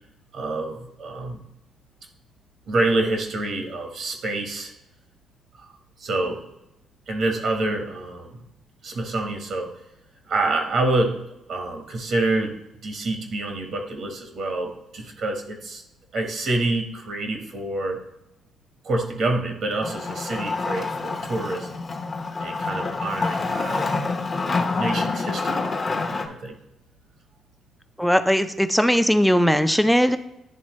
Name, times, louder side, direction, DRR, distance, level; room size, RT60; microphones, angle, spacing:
voice 1, 0.3-1.4 2.7-4.7 5.6-5.7 6.0-6.4 7.1-8.4 8.8-9.7 10.3-11.2 11.5-12.5 12.8-15.8 16.1-18.0 18.8-21.8 22.4-23.9 24.5-25.6 26.1-26.5, right 2 dB, 65° right, 4 dB, 1.2 m, -27 dB
Wood, 19.8-26.3, left 3 dB, 35° left, 0.9 m, -27 dB
voice 2, 28.0-30.2, equal, ahead, 9 dB, 0.5 m, -19 dB
10.5 x 3.5 x 3.1 m, 0.88 s
cardioid pair, 90°, 0 cm